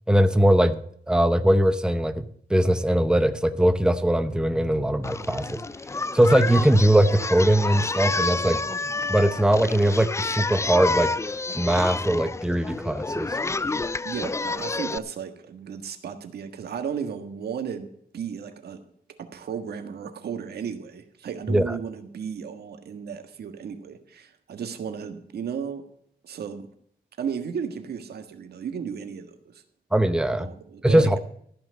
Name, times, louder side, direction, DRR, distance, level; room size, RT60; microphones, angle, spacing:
voice 1, 0.1-0.8 1.1-2.2 2.5-5.6 6.1-8.6 9.1-11.1 11.5-13.3 21.5-21.6 29.9-30.5 30.8-31.2, right 1 dB, 5° right, 11 dB, 0.8 m, -20 dB
Singing, 5.0-15.0, left 3 dB, 20° left, 0.4 m, -29 dB
voice 2, 14.0-17.9 18.1-18.8 19.2-25.9 26.2-26.7 27.2-29.6 30.4-31.2, right 7 dB, 90° right, 8 dB, 1.5 m, -34 dB
14.0 x 5.9 x 7.7 m, 0.66 s
cardioid pair, 90°, 16 cm